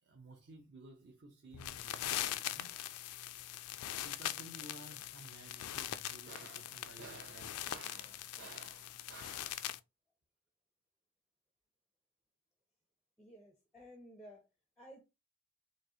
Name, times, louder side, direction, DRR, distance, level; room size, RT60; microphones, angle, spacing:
voice 1, 0.0-2.7 4.0-9.7, right 2 dB, 50° right, 0.6 m, -54 dB
sound 1, 1.5-9.8, left 12 dB, 85° left, 0.3 m, -42 dB
voice 2, 13.2-14.4 14.8-15.0, equal, ahead, 0.5 m, -55 dB
4.9 x 2.1 x 2.7 m
head